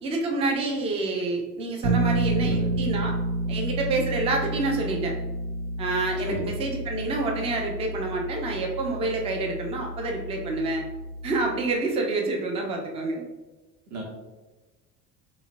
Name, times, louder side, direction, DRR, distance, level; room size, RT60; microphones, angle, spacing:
voice 1, 0.0-3.1 3.5-5.1 5.8-10.8 11.2-13.2, right 2 dB, 15° right, 1 dB, 0.4 m, -28 dB
Bass guitar, 1.8-11.7, right 2 dB, 55° right, 0.7 m, -30 dB
voice 2, 2.4-2.7 6.3-6.5 13.9-14.0, equal, 35° right, 0 dB, 0.9 m, -33 dB
3.8 x 3.0 x 2.5 m, 1.2 s
figure-of-eight pair, 70°, 48 cm